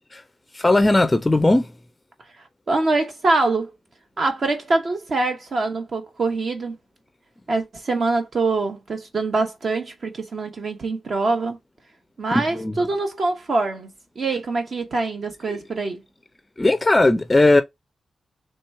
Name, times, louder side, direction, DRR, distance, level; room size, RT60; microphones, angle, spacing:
voice 1, 0.5-1.7 12.3-12.8 16.6-17.6, left 2 dB, 15° left, 0.4 m, -17 dB
voice 2, 2.4-3.7 4.2-6.8 7.5-11.6 12.2-13.9 14.2-16.0, right 3 dB, 50° right, 0.8 m, -24 dB
3.2 x 2.8 x 4.5 m
wide cardioid pair, 120°, 0 cm